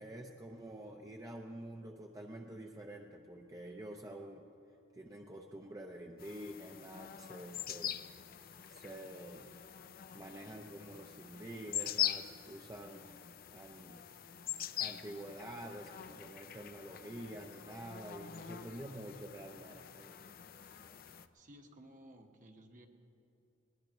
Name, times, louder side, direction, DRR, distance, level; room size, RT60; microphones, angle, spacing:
voice 1, 0.0-4.4 4.9-8.1 8.7-9.6 10.1-14.0 14.8-20.2, right 1 dB, 20° right, 1 dB, 0.7 m, -48 dB
sound 1, 6.2-21.3, left 11 dB, 50° left, 0.5 m, -43 dB
voice 2, 21.3-22.9, right 1 dB, 40° right, 3 dB, 1.4 m, -56 dB
20.5 x 20.0 x 3.1 m, 2.7 s
head